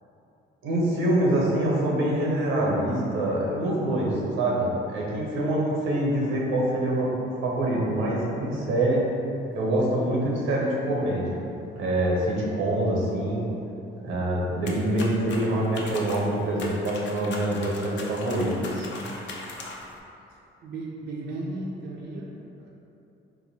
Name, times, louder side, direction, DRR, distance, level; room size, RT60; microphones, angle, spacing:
voice 1, 0.6-7.1 7.4-9.0 9.5-11.4 11.8-13.4 14.0-18.9, right 1 dB, 90° right, -3 dB, 0.9 m, -25 dB
sound 1, 14.7-20.0, left 3 dB, 65° left, 0.6 m, -39 dB
voice 2, 20.3-22.7, right 2 dB, 60° right, -3 dB, 0.5 m, -36 dB
3.6 x 2.6 x 4.0 m, 2.8 s
cardioid pair, 90°, 20 cm